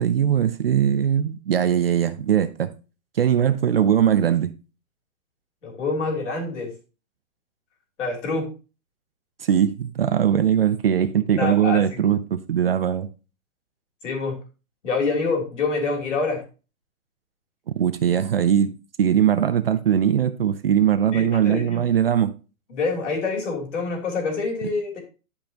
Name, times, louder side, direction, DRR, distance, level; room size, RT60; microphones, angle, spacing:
voice 1, 0.0-2.7 3.2-4.5 9.4-13.1 17.8-22.3, right 9 dB, 45° right, 0.6 m, -20 dB
voice 2, 5.6-6.7 8.0-8.5 11.4-12.0 14.0-14.4 14.8-16.4 21.1-21.8 22.7-25.0, left 4 dB, 55° left, 3.3 m, -26 dB
11.5 x 5.2 x 2.9 m
hypercardioid pair, 170°, 42 cm